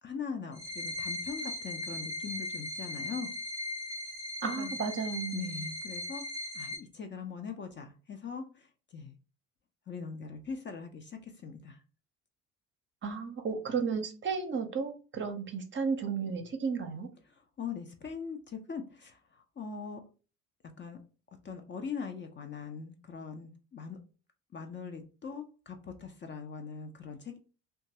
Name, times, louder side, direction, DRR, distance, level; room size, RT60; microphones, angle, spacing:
voice 1, 0.0-3.3 4.4-4.7 5.3-6.2 6.5-8.7 8.9-9.1 9.9-11.8 17.3-20.0 20.8-21.0 21.4-24.0 24.5-27.4, left 5 dB, 30° left, 0.6 m, -41 dB
sound 1, 0.5-6.8, left 1 dB, 60° left, 1.3 m, -38 dB
voice 2, 4.4-5.6 13.0-17.1, right 5 dB, 30° right, 0.7 m, -33 dB
2.9 x 2.3 x 2.7 m
hypercardioid pair, 60°, 40 cm